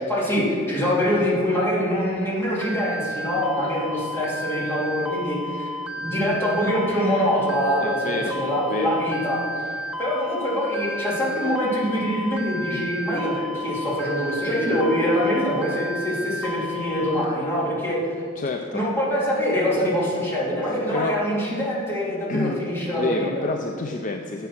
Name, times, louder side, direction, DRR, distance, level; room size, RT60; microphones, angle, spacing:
voice 1, 0.0-5.7 6.0-18.0 18.7-23.5, equal, 10° left, -7 dB, 2.8 m, -24 dB
sound 1, 2.6-17.2, equal, 5° right, 0.6 m, -32 dB
voice 2, 7.8-9.0 18.4-18.9 20.6-21.2 22.3-22.7 23.0-24.5, left 3 dB, 40° left, 4 dB, 0.5 m, -29 dB
10.0 x 7.3 x 6.0 m, 2.2 s
head